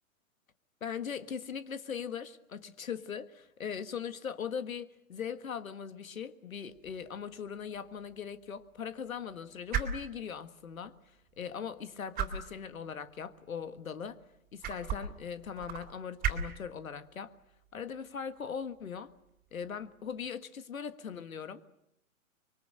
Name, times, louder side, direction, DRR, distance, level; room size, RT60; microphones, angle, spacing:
voice 1, 0.8-11.0 11.4-14.2 14.5-17.3 17.7-19.1 19.5-21.6, left 7 dB, 75° left, 12 dB, 1.7 m, -40 dB
sound 1, 6.7-20.3, right 7 dB, 20° right, 3.4 m, -41 dB
26.0 x 23.5 x 7.9 m, 0.80 s
hypercardioid pair, 125°, 42 cm